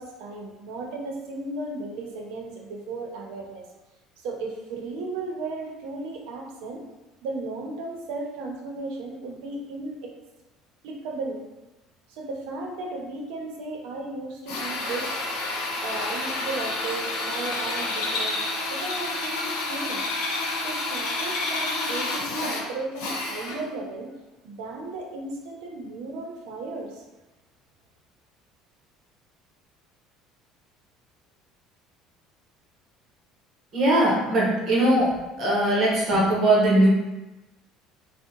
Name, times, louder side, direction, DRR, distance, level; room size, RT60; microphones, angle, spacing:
voice 1, 0.0-3.7 4.2-6.8 7.2-10.1 10.8-11.4 12.1-15.2 15.8-20.0 20.6-24.1 24.4-27.0, right 3 dB, 85° right, 0 dB, 0.6 m, -35 dB
Drill, 14.5-23.7, left 2 dB, 90° left, 0.6 m, -29 dB
voice 2, 33.7-35.1 35.3-36.9, right 1 dB, 40° right, -4 dB, 0.9 m, -20 dB
3.5 x 2.1 x 2.8 m, 1.0 s
cardioid pair, 160°, 0 cm